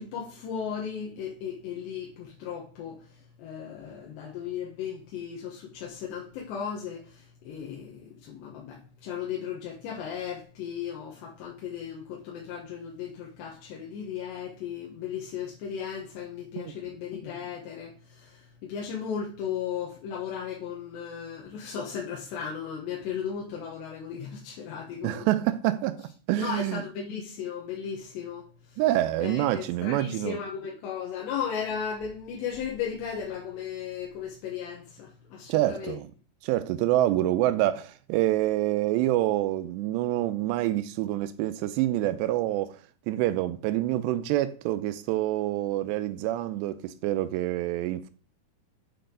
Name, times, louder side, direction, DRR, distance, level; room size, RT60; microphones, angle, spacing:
voice 1, 0.0-3.1 3.4-25.3 26.4-28.8 29.2-36.0, left 7 dB, 85° left, 3.5 m, -36 dB
voice 2, 25.0-26.8 28.8-30.4 35.5-36.1 36.4-42.8 43.1-48.1, right 14 dB, 90° right, 2.8 m, -27 dB
8.6 x 6.7 x 3.8 m
omnidirectional pair, 4.9 m